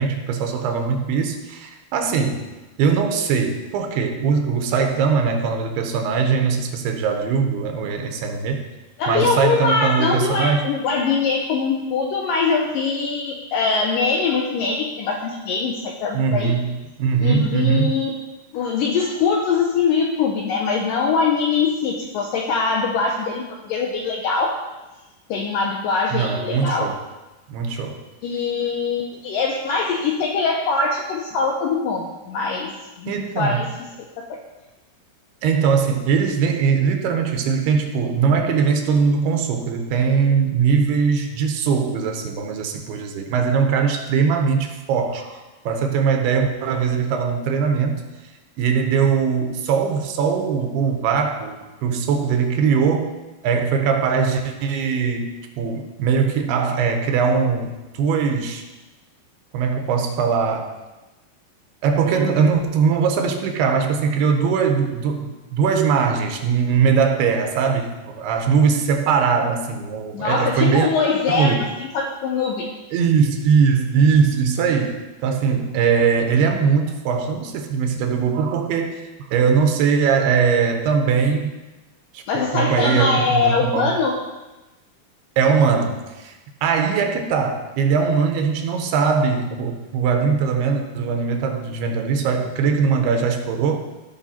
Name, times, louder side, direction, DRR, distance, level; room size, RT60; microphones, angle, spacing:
voice 1, 0.0-2.5 2.8-8.6 9.1-10.7 16.1-18.0 26.1-27.0 27.5-28.0 33.1-33.7 35.4-48.1 48.6-53.1 53.4-58.6 59.5-60.7 61.8-70.9 71.3-71.6 72.9-81.6 82.1-84.0 85.4-86.3 86.6-93.8, right 6 dB, 80° right, 5 dB, 2.8 m, -21 dB
voice 2, 9.0-16.6 17.2-18.2 18.5-24.6 25.3-26.9 28.2-33.7 34.2-34.4 62.1-62.2 70.1-71.7 71.9-72.7 82.3-84.2, left 4 dB, 75° left, 1 dB, 2.1 m, -22 dB
15.0 x 6.0 x 4.3 m, 1.1 s
omnidirectional pair, 4.7 m